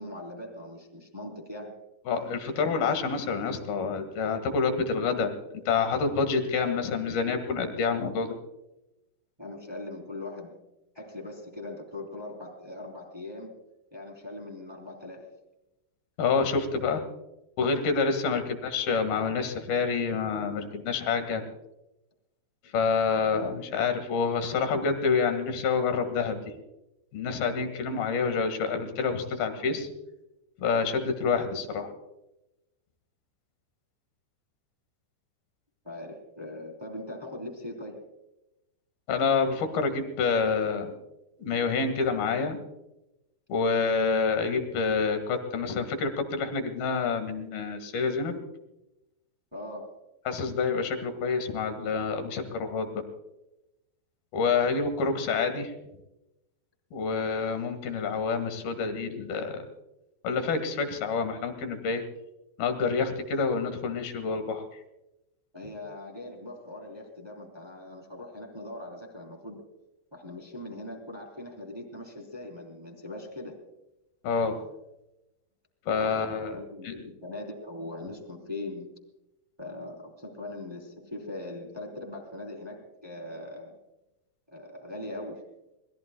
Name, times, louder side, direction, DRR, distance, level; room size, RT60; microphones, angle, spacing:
voice 1, 0.0-1.8 9.4-10.6 10.9-13.6 13.9-15.3 35.8-38.0 49.5-49.9 65.5-69.6 70.1-73.6 76.0-79.0 79.6-83.8 84.5-85.4, left 1 dB, 5° right, 1 dB, 2.7 m, -41 dB
voice 2, 2.1-5.3 5.7-8.4 16.2-17.0 17.6-21.4 22.7-26.5 27.1-29.9 30.6-31.9 39.1-40.9 41.4-42.6 43.5-48.4 50.3-53.0 54.3-55.7 56.9-59.6 60.2-62.0 62.6-64.6 74.2-74.6 75.9-76.9, left 5 dB, 60° left, 7 dB, 3.3 m, -27 dB
25.5 x 21.0 x 2.3 m, 0.93 s
omnidirectional pair, 5.6 m